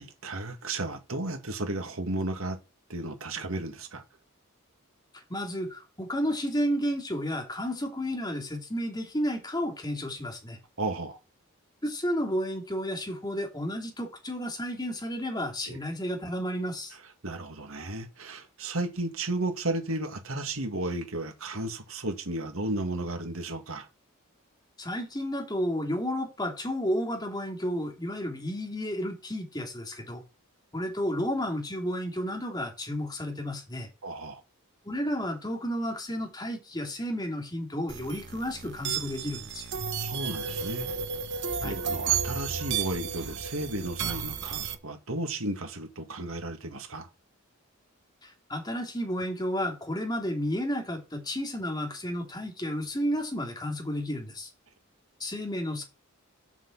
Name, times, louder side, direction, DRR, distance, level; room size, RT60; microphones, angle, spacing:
voice 1, 0.0-2.6 2.9-4.0 10.8-11.2 15.7-15.8 17.2-23.9 34.0-34.4 40.0-40.9 41.6-47.1, right 2 dB, 75° right, 2.0 m, -33 dB
voice 2, 5.3-10.6 11.8-16.9 24.8-30.2 30.7-33.9 34.8-39.7 41.6-41.8 48.2-54.5 55.2-55.8, equal, 20° left, 3.0 m, -32 dB
sound 1, 37.9-44.7, right 7 dB, 55° right, 1.1 m, -33 dB
7.2 x 6.1 x 7.2 m
head